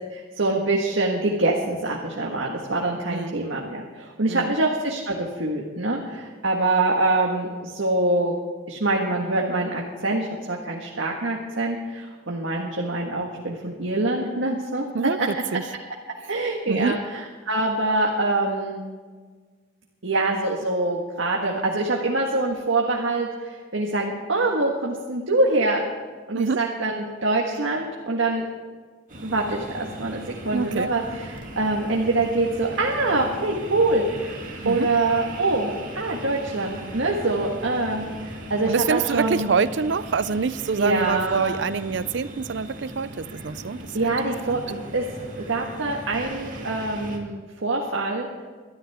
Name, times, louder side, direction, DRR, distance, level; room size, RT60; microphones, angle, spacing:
voice 1, 0.1-8.4 8.7-14.9 15.2-15.3 16.3-18.8 20.0-25.8 26.3-28.4 29.2-34.4 34.6-39.5 40.8-41.7 43.9-45.0 45.5-48.3, right 2 dB, 85° right, -1 dB, 1.6 m, -25 dB
voice 2, 14.9-15.6 16.7-17.0 26.3-26.6 30.5-30.9 34.6-34.9 38.7-44.1 44.5-44.6, right 5 dB, 65° right, 16 dB, 0.5 m, -26 dB
sound 1, 29.1-47.2, equal, 45° right, 2.3 m, -38 dB
23.0 x 13.0 x 3.6 m, 1.5 s
head